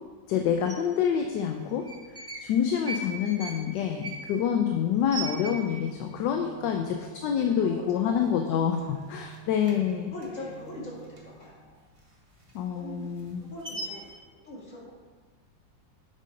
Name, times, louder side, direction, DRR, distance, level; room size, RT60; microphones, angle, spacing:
voice 1, 0.3-1.8 2.4-7.0 7.2-8.8 9.1-10.1 12.5-13.5, left 8 dB, 75° left, 4 dB, 1.2 m, -27 dB
sound 1, 0.6-0.8 1.7-2.5 2.8-6.0 6.3-6.4 6.7-7.2 7.6-7.7 8.1-8.8 9.1-11.5 11.9-14.1, right 3 dB, 20° right, 1.0 m, -39 dB
sound 2, 5.3-11.3, right 11 dB, 50° right, 2.0 m, -49 dB
voice 2, 6.4-9.0 10.0-11.8 12.7-13.1 13.4-14.9, left 1 dB, 40° left, -5 dB, 2.3 m, -43 dB
7.5 x 5.4 x 5.1 m, 1.4 s
omnidirectional pair, 2.1 m